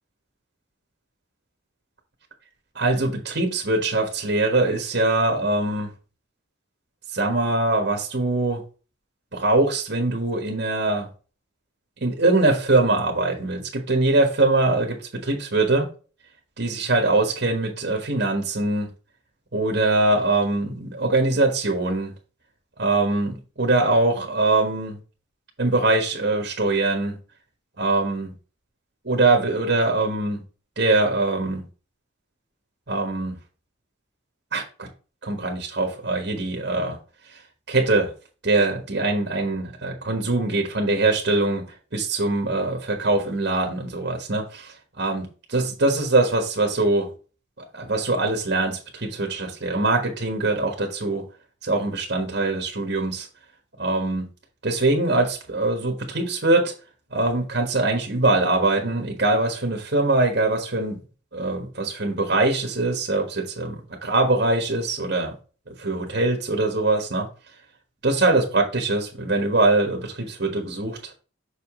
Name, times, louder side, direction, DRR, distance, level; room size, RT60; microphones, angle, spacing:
voice 1, 2.7-5.9 7.1-8.6 9.3-11.1 12.0-15.9 16.6-18.9 19.5-22.1 22.8-25.0 25.6-27.2 27.8-28.3 29.0-30.4 30.8-31.6 32.9-33.4 34.5-34.9 35.2-37.0 37.2-37.4 37.7-38.1 38.4-41.6 41.9-47.1 47.7-51.2 51.6-53.3 53.8-54.2 54.6-56.7 57.1-61.0 61.3-65.3 65.7-67.3 68.0-71.1, right 2 dB, 50° right, 2 dB, 1.5 m, -22 dB
6.5 x 5.0 x 3.7 m, 0.36 s
head